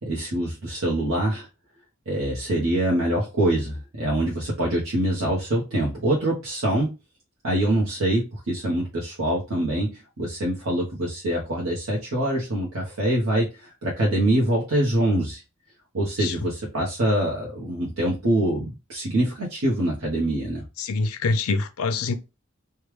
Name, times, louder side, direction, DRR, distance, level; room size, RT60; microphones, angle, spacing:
voice 1, 0.0-1.5 2.1-6.9 7.4-15.4 15.9-20.6, right 1 dB, 75° right, 0.9 m, -24 dB
voice 2, 20.8-22.2, left 3 dB, 90° left, 0.5 m, -25 dB
3.3 x 2.3 x 3.1 m
head